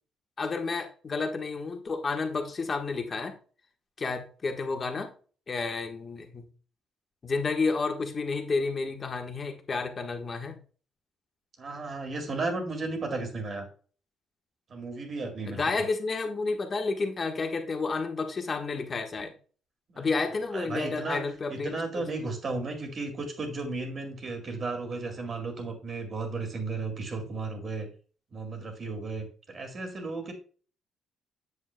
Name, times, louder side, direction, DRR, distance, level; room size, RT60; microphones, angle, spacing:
voice 1, 0.4-3.3 4.0-5.1 5.5-6.4 7.2-10.6 15.5-19.3 20.0-22.1, left 4 dB, 40° left, 4 dB, 1.3 m, -31 dB
voice 2, 11.6-13.7 14.7-15.6 19.9-20.0 20.5-21.2 21.5-27.9 28.3-30.3, right 3 dB, 45° right, 4 dB, 2.2 m, -34 dB
8.3 x 7.2 x 2.2 m, 0.40 s
cardioid pair, 90°, 0 cm